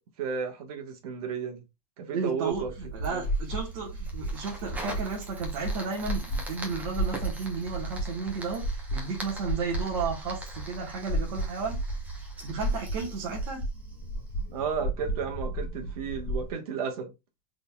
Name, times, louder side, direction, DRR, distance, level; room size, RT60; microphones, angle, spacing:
voice 1, 0.2-1.6 2.0-2.7 3.1-3.2 14.5-17.1, right 6 dB, 80° right, 1.3 m, -33 dB
voice 2, 2.1-12.0 12.4-13.6, right 5 dB, 60° right, 1.4 m, -33 dB
sound 1, 2.5-16.5, right 1 dB, 15° left, 1.1 m, -34 dB
Fire, 3.0-14.4, right 1 dB, 10° right, 0.8 m, -44 dB
3.8 x 3.7 x 2.3 m
supercardioid pair, 165°, 19 cm